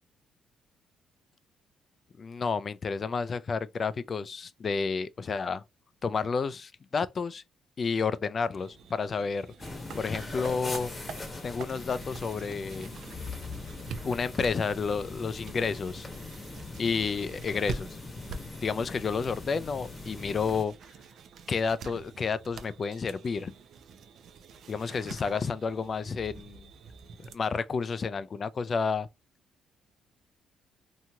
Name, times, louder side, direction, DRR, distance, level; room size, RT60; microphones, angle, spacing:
voice 1, 2.2-5.6 6.0-7.4 7.8-9.5 9.9-10.9 11.4-12.9 13.3-13.4 14.0-16.1 16.8-17.9 18.2-18.3 18.6-20.7 21.5-23.5 24.7-26.7 27.2-29.1, left 5 dB, 40° left, 0.3 m, -30 dB
sound 1, 8.6-27.4, right 5 dB, 70° right, 0.4 m, -46 dB
sound 2, 9.6-20.6, left 3 dB, 25° left, 0.9 m, -41 dB
2.9 x 2.7 x 2.2 m
cardioid pair, 90°, 0 cm